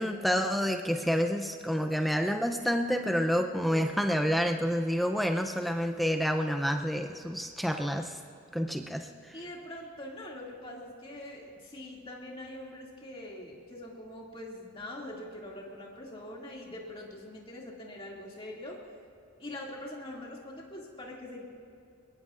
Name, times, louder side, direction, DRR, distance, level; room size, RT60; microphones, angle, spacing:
voice 1, 0.0-8.2 8.5-9.4, equal, ahead, 5 dB, 0.5 m, -29 dB
voice 2, 9.3-18.8 19.4-21.4, left 1 dB, 25° left, -3 dB, 2.4 m, -43 dB
22.0 x 21.5 x 2.5 m, 2.7 s
head